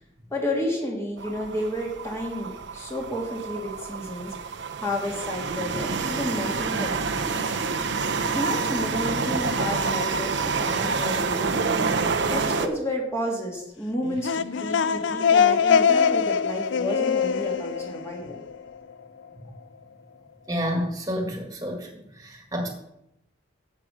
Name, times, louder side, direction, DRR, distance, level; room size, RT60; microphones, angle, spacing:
voice 1, 0.3-4.4 4.8-7.4 8.3-11.7 12.3-18.4, left 1 dB, 15° left, -1 dB, 1.9 m, -31 dB
sound 1, 1.2-12.7, right 4 dB, 65° right, 0.8 m, -28 dB
sound 2, 14.0-18.8, left 6 dB, 65° left, 0.5 m, -23 dB
voice 2, 20.5-21.9 22.2-22.7, equal, 15° right, 2 dB, 1.9 m, -29 dB
11.0 x 7.9 x 5.0 m, 0.82 s
head